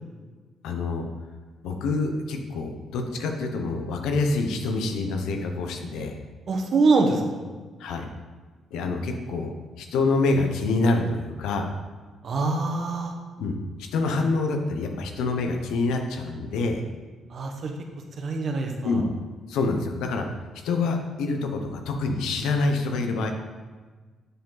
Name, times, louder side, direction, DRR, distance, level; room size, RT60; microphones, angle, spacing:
voice 1, 0.6-1.1 1.6-6.1 7.8-8.1 8.7-11.7 13.4-13.6 13.9-16.8 18.8-19.0 19.5-20.3 20.6-23.3, left 3 dB, 90° left, 4 dB, 0.8 m, -26 dB
voice 2, 6.5-7.5 12.2-13.1 17.3-17.7 18.2-19.1, right 3 dB, 55° right, 3 dB, 1.1 m, -24 dB
8.1 x 4.8 x 3.9 m, 1.4 s
cardioid pair, 90°, 0 cm